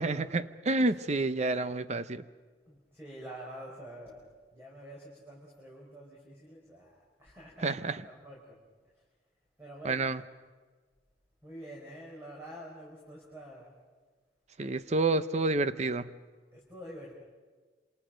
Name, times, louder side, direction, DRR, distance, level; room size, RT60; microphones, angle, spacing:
voice 1, 0.0-2.3 7.6-8.1 9.8-10.2 14.6-16.1, right 3 dB, 40° right, 13 dB, 0.7 m, -29 dB
voice 2, 2.7-8.6 9.6-10.1 11.4-13.7 16.5-17.2, equal, 15° right, -4 dB, 4.7 m, -47 dB
27.5 x 27.0 x 5.1 m, 1.4 s
head